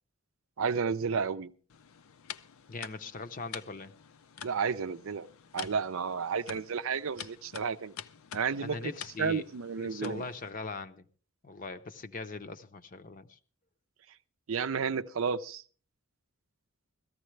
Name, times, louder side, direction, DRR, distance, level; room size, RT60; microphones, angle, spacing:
voice 1, 0.6-1.5 4.4-5.3 5.5-7.9 8.3-8.9 9.2-10.2 14.5-15.6, right 6 dB, 70° right, 0.5 m, -32 dB
sound 1, 1.7-10.5, left 8 dB, 80° left, 0.5 m, -48 dB
voice 2, 2.7-3.9 8.6-9.4 9.8-11.1 11.4-13.4, left 4 dB, 40° left, 0.7 m, -40 dB
17.0 x 14.0 x 3.2 m
head